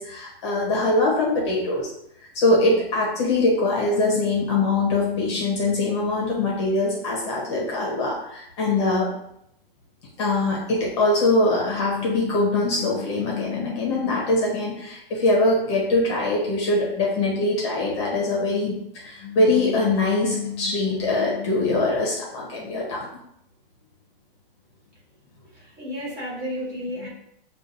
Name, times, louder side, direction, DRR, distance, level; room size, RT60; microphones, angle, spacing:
voice 1, 0.0-1.9 2.3-9.1 10.2-18.7 19.0-23.1 27.0-27.1, left 2 dB, 30° left, -3 dB, 0.8 m, -22 dB
voice 2, 25.5-27.1, equal, 20° right, -6 dB, 0.9 m, -32 dB
6.5 x 2.5 x 2.5 m, 0.75 s
supercardioid pair, 180°, 30 cm